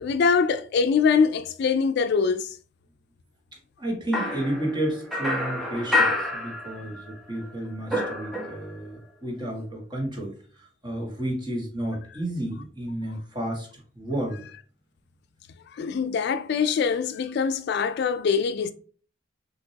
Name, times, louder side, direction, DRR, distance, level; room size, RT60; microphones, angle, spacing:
voice 1, 0.0-2.6 15.7-18.7, left 5 dB, 60° left, 0.3 m, -23 dB
voice 2, 3.5-14.4, right 1 dB, 25° right, 1.6 m, -32 dB
sound 1, 4.1-7.1 7.4-8.9, left 2 dB, ahead, 0.9 m, -28 dB
6.2 x 2.9 x 2.8 m
head